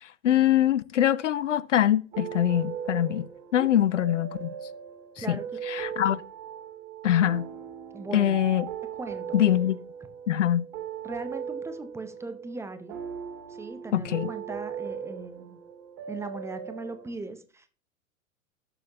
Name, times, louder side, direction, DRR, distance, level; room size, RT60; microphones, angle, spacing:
voice 1, 0.0-3.3 3.5-4.5 5.2-5.4 5.7-6.2 7.0-7.5 8.1-8.6 9.3-9.8 10.3-10.6 13.9-14.3, left 11 dB, 65° left, 0.6 m, -23 dB
sound 1, 2.1-17.1, right 8 dB, 40° right, 2.5 m, -39 dB
voice 2, 5.2-5.5 7.9-8.4 8.9-9.4 11.0-13.0 13.5-15.6 16.1-17.7, right 3 dB, 5° right, 0.7 m, -39 dB
17.5 x 6.7 x 2.8 m
figure-of-eight pair, 95°, 40 cm